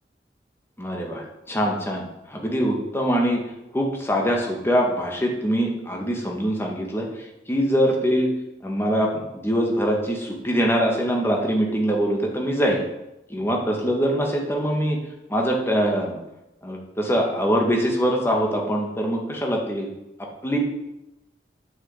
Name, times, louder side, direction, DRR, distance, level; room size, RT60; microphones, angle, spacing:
voice 1, 0.8-3.4 3.7-8.3 8.6-12.8 13.3-15.0 15.3-16.2 16.6-19.9 20.4-20.6, equal, 15° left, 0 dB, 1.9 m, -23 dB
9.3 x 6.6 x 8.0 m, 0.93 s
head